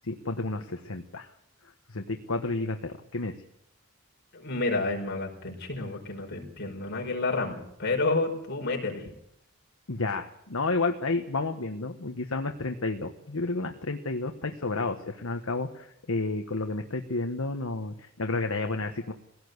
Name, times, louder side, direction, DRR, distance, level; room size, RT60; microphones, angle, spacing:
voice 1, 0.0-1.3 1.9-3.3 9.9-19.1, left 3 dB, 70° left, 4 dB, 1.4 m, -31 dB
voice 2, 4.3-9.1, left 3 dB, 50° left, 1 dB, 5.0 m, -30 dB
21.5 x 17.0 x 8.1 m, 0.76 s
head